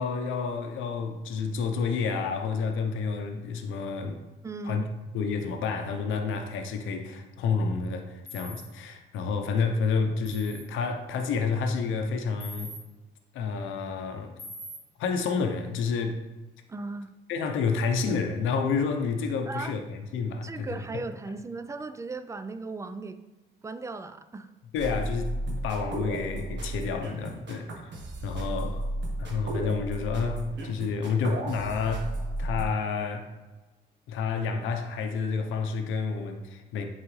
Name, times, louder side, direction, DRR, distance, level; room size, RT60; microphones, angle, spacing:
voice 1, 0.0-4.2 4.6-4.8 5.1-12.7 13.3-14.4 15.0-16.2 17.3-20.8 24.7-27.7 28.2-28.9 29.2-32.1 32.4-33.3 34.1-36.9, left 5 dB, 90° left, 5 dB, 0.7 m, -29 dB
voice 2, 4.4-4.9 16.7-17.1 19.5-19.8 20.4-23.2 23.6-24.5 32.4-32.5, right 3 dB, 15° right, 10 dB, 0.4 m, -37 dB
sound 1, 8.3-8.6 10.2-10.6 12.4-12.8 14.4-14.8, equal, 15° left, 2.1 m, -42 dB
sound 2, 24.8-32.7, right 2 dB, 65° right, 1.4 m, -34 dB
8.5 x 3.9 x 3.2 m, 1.1 s
cardioid pair, 90°, 20 cm